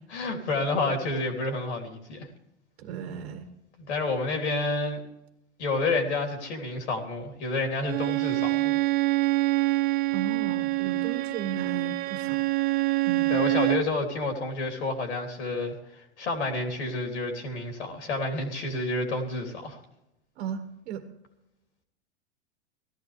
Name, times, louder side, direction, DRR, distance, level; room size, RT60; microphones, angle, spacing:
voice 1, 0.1-2.3 3.8-5.0 5.6-8.8 13.3-19.8, left 3 dB, 75° left, 4 dB, 3.4 m, -29 dB
voice 2, 2.8-3.5 10.1-12.4 13.0-13.4 20.4-21.0, right 7 dB, 60° right, 7 dB, 1.7 m, -35 dB
Bowed string instrument, 7.8-13.9, right 19 dB, 25° right, 0.4 m, -26 dB
18.0 x 14.5 x 3.3 m, 0.85 s
hypercardioid pair, 95°, 34 cm